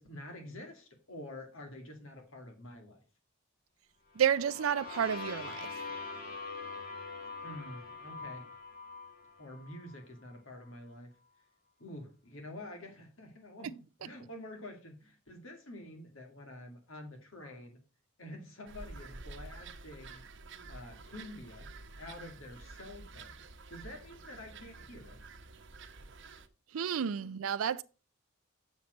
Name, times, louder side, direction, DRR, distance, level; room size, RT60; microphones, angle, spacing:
voice 1, 0.0-3.0 7.4-8.5 9.4-11.1 11.8-17.8 18.2-20.2 20.7-21.7 22.0-23.4 23.7-25.2 27.2-27.3, left 1 dB, 75° left, 2.3 m, -48 dB
sound 1, 4.1-10.0, left 4 dB, 45° left, 2.1 m, -44 dB
voice 2, 4.2-5.7 26.7-27.8, right 8 dB, 80° right, 0.4 m, -30 dB
sound 2, 18.7-26.5, right 3 dB, 60° right, 0.9 m, -49 dB
7.3 x 7.2 x 5.1 m
head